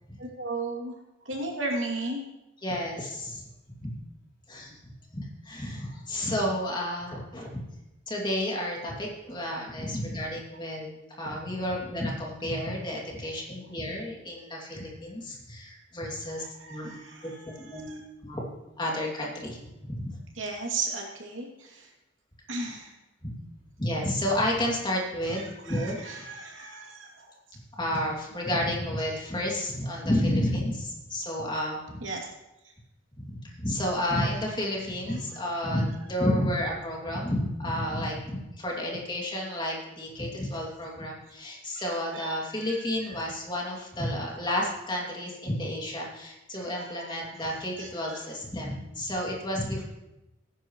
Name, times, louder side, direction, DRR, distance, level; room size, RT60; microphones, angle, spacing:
voice 1, 0.2-0.9 1.3-2.2 16.4-17.2 17.8-17.9 20.4-21.5 22.5-22.9 26.1-27.1 32.0-32.2 42.1-42.4 47.0-47.2 47.8-47.9, right 3 dB, 80° right, 0 dB, 2.7 m, -34 dB
voice 2, 2.6-3.5 3.8-3.9 4.5-4.8 5.1-7.7 8.1-16.4 16.7-17.3 17.6-18.5 18.8-20.2 23.2-23.3 23.8-26.0 27.8-32.0 33.2-49.8, left 1 dB, 25° left, -2 dB, 2.6 m, -31 dB
18.0 x 10.0 x 3.1 m, 0.96 s
head